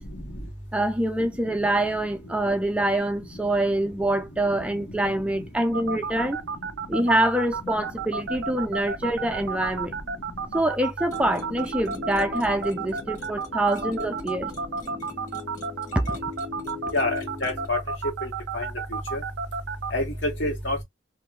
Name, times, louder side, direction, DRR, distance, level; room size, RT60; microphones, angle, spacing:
voice 1, 0.7-6.4 6.9-9.9 10.5-14.5 15.9-16.2, right 1 dB, 5° right, 0.4 m, -25 dB
sound 1, 5.7-19.9, right 5 dB, 80° right, 0.5 m, -31 dB
sound 2, 11.1-17.7, left 4 dB, 40° left, 1.3 m, -40 dB
voice 2, 17.4-17.8 18.2-18.3 18.5-18.6 19.1-19.2 19.9-20.8, left 2 dB, 80° left, 1.6 m, -26 dB
2.8 x 2.6 x 3.2 m
head